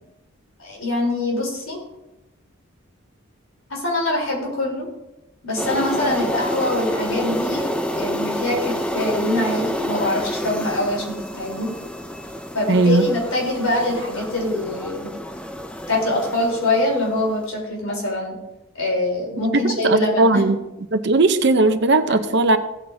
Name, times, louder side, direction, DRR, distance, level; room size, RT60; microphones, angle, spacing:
voice 1, 0.6-1.8 3.7-4.9 5.4-11.7 12.5-15.1 15.9-18.4 18.8-20.4, left 1 dB, 80° left, -1 dB, 3.8 m, -24 dB
sound 1, 5.6-17.4, equal, 5° left, 0.6 m, -29 dB
voice 2, 12.7-13.0 19.6-20.6 20.9-22.6, right 2 dB, 55° right, 9 dB, 0.7 m, -17 dB
16.5 x 8.8 x 2.7 m, 0.95 s
head